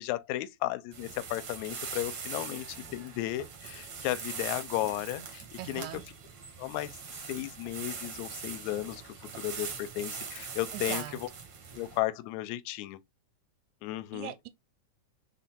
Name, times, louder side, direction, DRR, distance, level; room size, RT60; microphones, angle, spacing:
voice 1, 0.0-6.0 6.6-7.0 7.3-11.3 11.7-13.0 13.8-14.3, left 15 dB, 80° left, 1.8 m, -34 dB
sound 1, 0.9-12.0, right 5 dB, 55° right, 1.3 m, -41 dB
voice 2, 5.6-6.0 10.7-11.2 14.1-14.5, right 13 dB, 80° right, 1.8 m, -40 dB
4.2 x 4.0 x 2.8 m
omnidirectional pair, 3.5 m